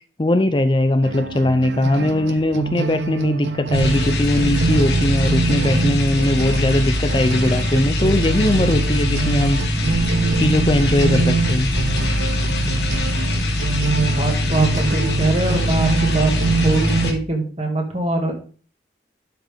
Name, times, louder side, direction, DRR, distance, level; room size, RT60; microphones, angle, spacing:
voice 1, 0.2-9.6 10.4-11.7, left 1 dB, 25° left, 9 dB, 0.5 m, -19 dB
sound 1, 1.0-17.1, right 4 dB, 90° right, 0.7 m, -25 dB
sound 2, 3.7-17.1, left 1 dB, 75° left, 2.0 m, -22 dB
voice 2, 13.9-18.3, right 2 dB, 35° right, 2 dB, 2.0 m, -23 dB
11.5 x 5.9 x 3.5 m, 0.39 s
head